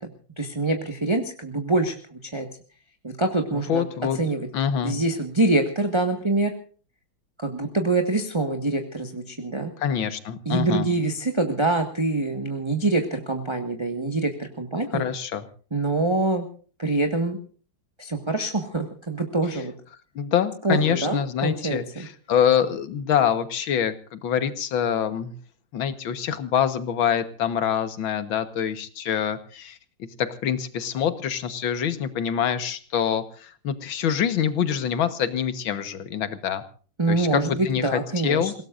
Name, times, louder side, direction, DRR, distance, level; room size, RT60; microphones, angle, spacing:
voice 1, 0.4-2.5 3.0-3.8 4.2-4.5 4.8-6.5 7.4-9.7 10.4-15.0 15.7-16.4 16.8-17.4 18.0-19.7 20.6-22.1 37.0-38.6, right 2 dB, 15° right, 4 dB, 1.5 m, -25 dB
voice 2, 3.5-4.2 4.5-5.0 9.8-10.9 14.9-15.5 20.2-25.3 25.7-36.6 37.1-38.5, left 8 dB, 80° left, 12 dB, 2.1 m, -25 dB
28.0 x 18.0 x 2.5 m, 0.41 s
omnidirectional pair, 2.1 m